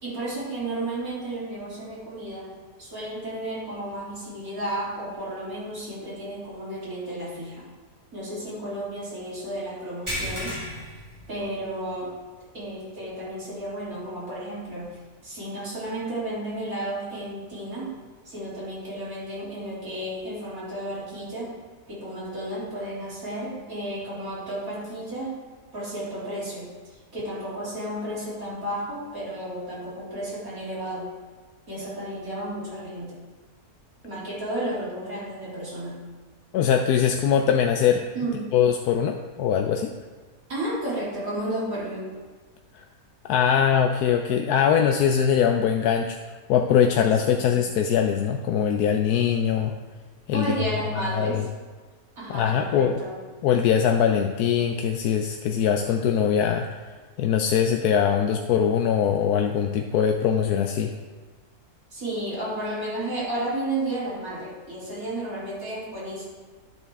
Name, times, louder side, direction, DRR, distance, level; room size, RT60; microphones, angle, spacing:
voice 1, 0.0-2.5 2.8-7.7 8.1-10.6 11.3-12.1 12.5-15.0 15.2-17.9 18.3-21.5 21.9-25.4 25.7-31.1 31.7-33.2 34.0-36.0 38.1-38.5 40.5-42.1 47.3-47.6 50.3-51.4 52.2-53.2 61.9-66.3, right 1 dB, 65° right, -8 dB, 3.9 m, -32 dB
sound 1, 10.1-11.9 12.3-12.5 13.0-13.1 14.7-14.8, equal, 15° right, 3.4 m, -34 dB
voice 2, 36.5-38.0 38.5-39.9 42.7-42.8 43.3-46.2 46.5-49.7 50.3-50.5 50.9-51.4 52.3-53.0 53.4-56.8 57.2-60.9, left 8 dB, 80° left, 4 dB, 1.1 m, -22 dB
11.0 x 8.0 x 3.5 m, 1.3 s
omnidirectional pair, 1.6 m